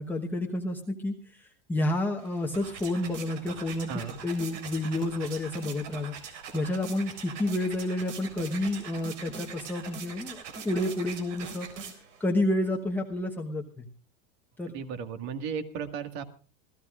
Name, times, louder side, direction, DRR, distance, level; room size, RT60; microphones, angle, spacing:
voice 1, 0.0-3.9 4.2-13.9 14.6-14.7, left 1 dB, 5° left, -1 dB, 1.1 m, -30 dB
sound 1, 2.2-12.3, right 6 dB, 90° right, 4.0 m, -42 dB
voice 2, 3.9-4.2 14.7-16.2, right 6 dB, 50° right, 8 dB, 1.9 m, -35 dB
27.0 x 15.5 x 2.5 m, 0.36 s
supercardioid pair, 145°, 36 cm